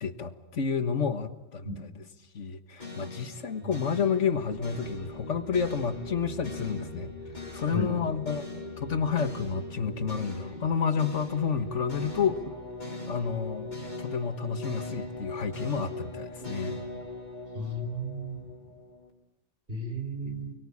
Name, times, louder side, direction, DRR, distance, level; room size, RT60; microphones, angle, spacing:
voice 1, 0.0-2.1 2.3-7.1 7.5-8.5 8.8-12.5 13.1-13.7 14.0-16.8, left 6 dB, 75° left, 10 dB, 1.8 m, -30 dB
sound 1, 2.8-19.1, left 2 dB, 40° left, 4.6 m, -40 dB
voice 2, 17.6-18.4 19.7-20.5, right 1 dB, 50° right, 4 dB, 5.2 m, -34 dB
29.5 x 22.5 x 8.6 m, 0.86 s
omnidirectional pair, 1.2 m